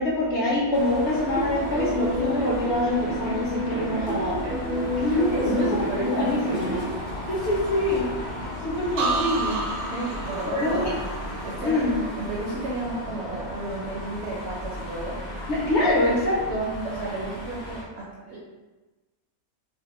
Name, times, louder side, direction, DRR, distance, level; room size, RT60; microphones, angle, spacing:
voice 1, 0.0-4.4 5.0-7.0 7.3-8.1 8.6-9.6 10.5-10.9 11.6-11.9 15.5-16.8, left 1 dB, 65° left, -5 dB, 0.8 m, -25 dB
sound 1, 0.7-17.8, left 1 dB, 45° left, 0.4 m, -36 dB
sound 2, 1.3-6.8, equal, 15° right, 0.4 m, -29 dB
voice 2, 5.3-6.9 9.9-11.0 11.4-15.3 15.8-15.9 16.8-18.4, right 2 dB, 65° right, -5 dB, 0.7 m, -33 dB
sound 3, 9.0-12.8 13.1-13.6, right 3 dB, 80° right, 1.0 m, -32 dB
2.6 x 2.2 x 2.8 m, 1.2 s
omnidirectional pair, 1.5 m